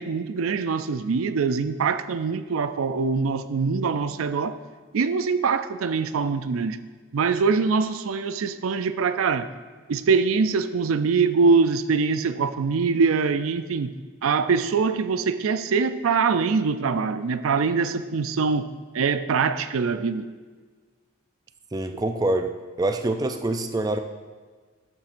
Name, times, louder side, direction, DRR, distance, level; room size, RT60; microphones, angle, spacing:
voice 1, 0.0-4.6 4.9-6.8 7.1-9.5 9.9-13.9 14.2-18.7 18.9-20.3, right 5 dB, 90° right, 11 dB, 0.4 m, -23 dB
voice 2, 21.7-22.5 22.8-24.0, right 2 dB, 20° right, 6 dB, 0.3 m, -25 dB
12.5 x 7.2 x 2.6 m, 1.5 s
head